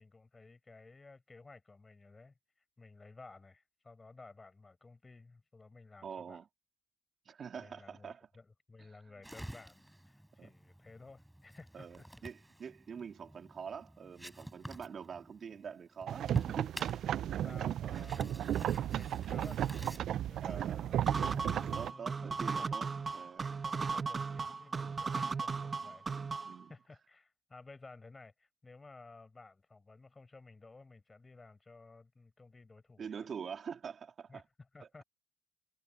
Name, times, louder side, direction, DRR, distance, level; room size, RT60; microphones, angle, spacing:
voice 1, 0.0-2.3 2.8-6.4 7.6-12.3 17.2-21.2 21.7-22.7 23.0-23.2 23.6-26.1 26.7-33.3 34.3-35.0, left 3 dB, 25° left, 6.2 m, -55 dB
voice 2, 6.0-6.5 7.3-8.2 8.8-8.9 10.4-10.5 11.7-17.0 17.3-17.4 18.0-18.1 20.4-20.8 21.8-23.5 24.0-24.2 26.5-26.7 33.0-34.4, right 7 dB, 50° right, 3.3 m, -45 dB
sound 1, 9.2-20.0, right 1 dB, 5° right, 4.8 m, -50 dB
sound 2, 16.1-21.9, right 11 dB, 70° right, 0.4 m, -34 dB
sound 3, 21.1-26.6, right 5 dB, 35° right, 0.9 m, -36 dB
cardioid pair, 90°, 0 cm